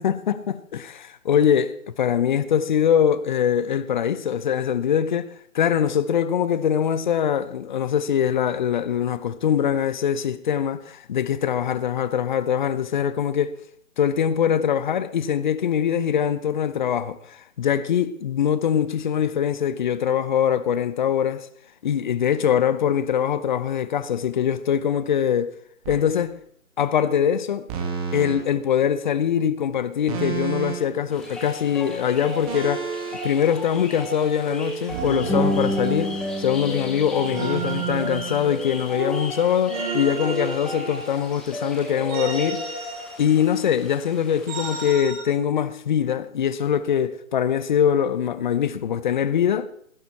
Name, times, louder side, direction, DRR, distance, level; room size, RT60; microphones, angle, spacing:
voice 1, 0.0-5.3 5.5-13.6 14.0-21.5 21.8-25.5 25.9-26.4 26.8-27.7 28.1-32.9 33.2-42.7 43.2-49.7, left 8 dB, 35° left, 0.8 m, -23 dB
sound 1, 25.8-26.1 27.7-28.4 30.1-31.0 32.5-33.2 34.9-36.3 37.3-38.9 39.7-41.3 42.1-43.6 44.5-45.2, right 6 dB, 30° right, 2.4 m, -31 dB
sound 2, 31.1-44.9, equal, ahead, 0.6 m, -32 dB
16.0 x 11.0 x 4.2 m
hypercardioid pair, 150°, 40 cm